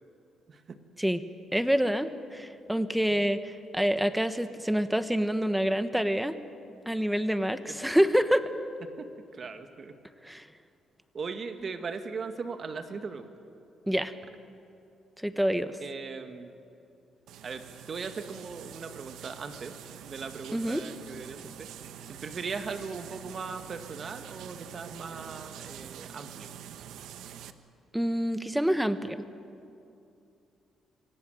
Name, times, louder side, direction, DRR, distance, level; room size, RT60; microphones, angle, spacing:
voice 1, 0.5-0.8 3.1-3.3 7.7-7.8 8.8-10.0 11.1-13.3 15.8-16.5 17.4-19.8 20.0-21.7 22.2-26.5, right 5 dB, 45° right, 7 dB, 1.9 m, -39 dB
voice 2, 1.5-6.4 6.9-8.5 10.2-10.5 13.9-14.1 15.2-15.8 20.5-20.8 27.9-29.2, equal, 5° right, 11 dB, 1.2 m, -27 dB
sound 1, 17.3-27.5, right 10 dB, 80° right, 1.0 m, -45 dB
25.0 x 17.0 x 9.3 m, 2.6 s
cardioid pair, 90°, 0 cm